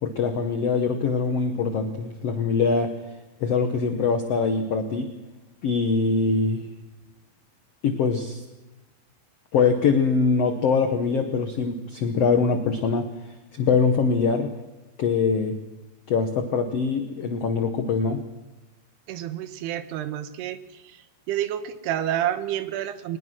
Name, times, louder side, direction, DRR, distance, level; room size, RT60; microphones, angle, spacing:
voice 1, 0.0-2.9 3.4-5.1 5.6-6.7 7.8-8.4 9.5-13.1 13.5-14.5 15.0-15.6 16.1-18.2, left 5 dB, 85° left, 7 dB, 1.3 m, -23 dB
voice 2, 19.1-21.0 21.3-23.2, right 11 dB, 85° right, 12 dB, 3.1 m, -29 dB
21.5 x 20.0 x 6.2 m, 1.1 s
omnidirectional pair, 4.6 m